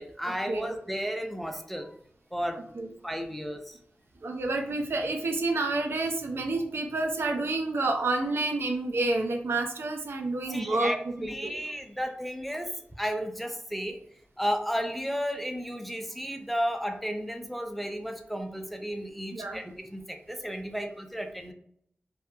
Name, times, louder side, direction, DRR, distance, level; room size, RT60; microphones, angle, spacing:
voice 1, 0.0-1.9 2.3-2.6 3.0-3.8 10.5-14.0 14.4-21.5, equal, ahead, 5 dB, 0.4 m, -33 dB
voice 2, 4.2-11.5 19.3-19.6, right 2 dB, 80° right, 3 dB, 0.4 m, -29 dB
2.7 x 2.3 x 2.4 m, 0.69 s
wide cardioid pair, 65°, 4 cm